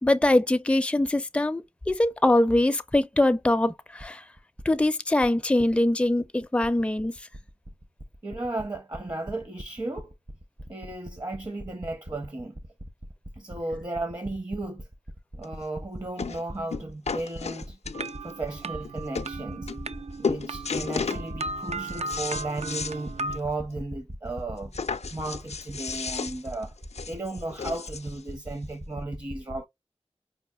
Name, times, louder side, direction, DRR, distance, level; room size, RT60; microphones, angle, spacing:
voice 1, 0.0-4.2 4.7-7.2, left 1 dB, 10° left, 0.4 m, -23 dB
voice 2, 8.2-10.1 10.7-12.5 13.3-14.9 15.3-17.8 18.2-19.7 20.2-24.7 25.1-26.7 27.1-29.7, right 2 dB, 35° right, 0.7 m, -34 dB
sound 1, 15.4-15.5 16.2-16.4 16.7-18.3 18.8-18.9 19.1-19.3 19.7-20.0 20.2-21.2 21.7-23.0 23.3-23.4 23.7-23.8 24.7-28.2 29.0-29.1, left 5 dB, 75° left, 0.4 m, -33 dB
sound 2, 17.9-23.4, right 2 dB, 75° right, 0.4 m, -36 dB
4.8 x 2.4 x 2.2 m
wide cardioid pair, 40°, 11 cm